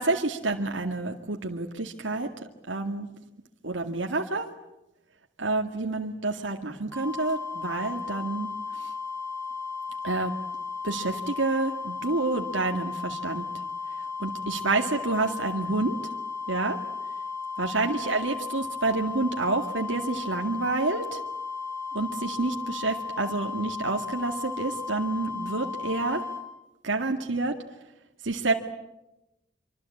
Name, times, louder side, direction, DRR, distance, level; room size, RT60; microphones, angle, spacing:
voice 1, 0.0-2.3 2.7-3.1 3.6-4.5 5.4-8.5 8.8-8.9 10.0-10.3 10.8-13.4 14.2-16.0 16.5-16.8 17.6-21.2 21.9-26.2 26.8-27.6 28.2-28.5, right 3 dB, 80° right, 2 dB, 2.1 m, -28 dB
sound 1, 6.9-26.4, left 5 dB, 15° left, 6.4 m, -35 dB
26.5 x 25.0 x 8.7 m, 0.94 s
head